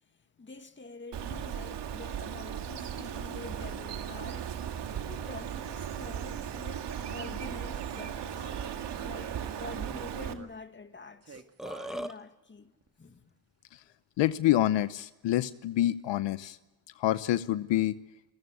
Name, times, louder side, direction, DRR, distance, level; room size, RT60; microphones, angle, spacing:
voice 1, 0.4-8.5 9.0-11.4 11.9-12.7 13.0-13.3, left 3 dB, 25° left, 2.1 m, -46 dB
Bird, 1.1-10.3, right 9 dB, 70° right, 2.1 m, -37 dB
sound 1, 6.8-7.8 8.3-10.5 11.2-12.0 12.8-12.9, right 5 dB, 35° right, 2.2 m, -50 dB
Burping eructation, 11.0-11.1 11.3-12.1, equal, ahead, 1.5 m, -38 dB
voice 2, 14.2-16.6 17.0-18.0, left 14 dB, 80° left, 0.9 m, -27 dB
29.0 x 14.5 x 9.6 m
cardioid pair, 75°, 43 cm